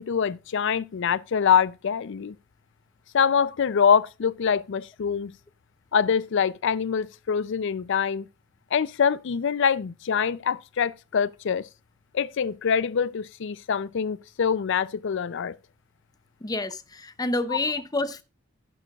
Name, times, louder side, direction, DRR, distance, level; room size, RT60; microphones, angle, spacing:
voice 1, 0.0-2.3 3.1-5.3 5.9-8.3 8.7-11.7 12.1-15.5, left 7 dB, 60° left, 0.4 m, -24 dB
voice 2, 16.4-18.2, left 2 dB, 20° left, 0.7 m, -28 dB
11.0 x 10.5 x 2.4 m
head